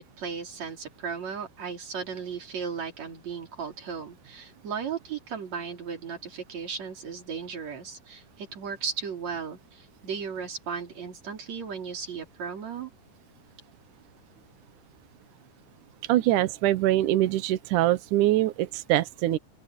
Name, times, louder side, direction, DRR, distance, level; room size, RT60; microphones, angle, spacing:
voice 1, 0.0-12.9, right 6 dB, 45° right, 4.5 m, -36 dB
voice 2, 16.1-19.4, right 14 dB, 80° right, 1.8 m, -23 dB
open air
omnidirectional pair, 4.8 m